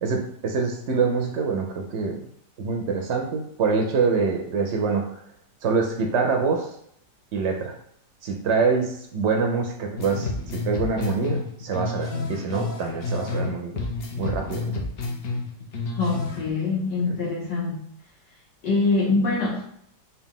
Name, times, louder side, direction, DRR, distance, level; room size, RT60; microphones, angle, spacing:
voice 1, 0.0-2.2 2.6-5.2 5.6-6.7 7.3-7.7 8.2-13.7 14.2-14.8 17.1-17.2, right 4 dB, 70° right, 2 dB, 0.6 m, -25 dB
sound 1, 10.0-13.5 13.8-16.5, left 3 dB, 65° left, 0.5 m, -30 dB
voice 2, 16.0-17.8 18.6-19.6, left 3 dB, 85° left, -4 dB, 1.8 m, -24 dB
4.1 x 2.3 x 3.6 m, 0.69 s
omnidirectional pair, 1.9 m